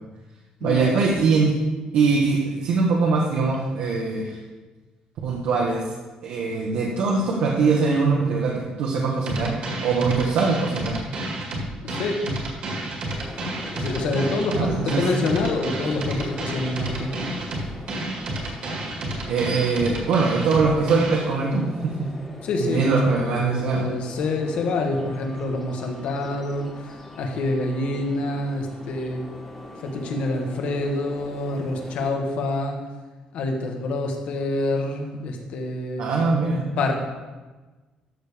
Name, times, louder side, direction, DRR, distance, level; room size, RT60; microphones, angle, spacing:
voice 1, 0.6-1.5 1.9-4.4 5.2-5.8 6.2-10.9 14.5-15.0 19.3-22.1 22.6-23.9 36.0-36.7, right 4 dB, 80° right, -3 dB, 1.4 m, -22 dB
sound 1, 9.3-21.3, right 1 dB, 50° right, 2.0 m, -30 dB
voice 2, 11.8-12.3 13.8-17.1 22.4-29.2 29.8-32.8 33.3-36.1 36.8-37.0, left 2 dB, 60° left, 3 dB, 1.4 m, -27 dB
sound 2, 13.0-32.1, left 1 dB, 10° left, 1.5 m, -42 dB
13.0 x 6.7 x 3.6 m, 1.2 s
cardioid pair, 175°, 2 cm